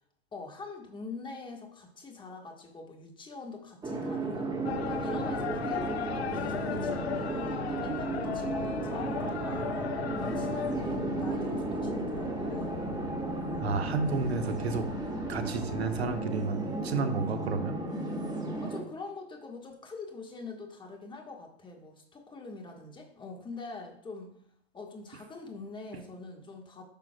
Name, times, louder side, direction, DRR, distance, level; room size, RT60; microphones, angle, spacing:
voice 1, 0.3-4.5 4.8-9.7 10.2-12.8 18.6-24.3 24.7-26.8, left 3 dB, 15° left, 2 dB, 1.3 m, -44 dB
sound 1, 3.8-18.8, right 2 dB, 10° right, 1.3 m, -34 dB
sound 2, 4.6-16.2, left 9 dB, 75° left, 0.6 m, -38 dB
voice 2, 13.6-14.9 15.3-17.8 25.9-26.0, right 4 dB, 75° right, 8 dB, 1.0 m, -31 dB
10.5 x 6.1 x 2.2 m, 0.67 s
hypercardioid pair, 105°, 32 cm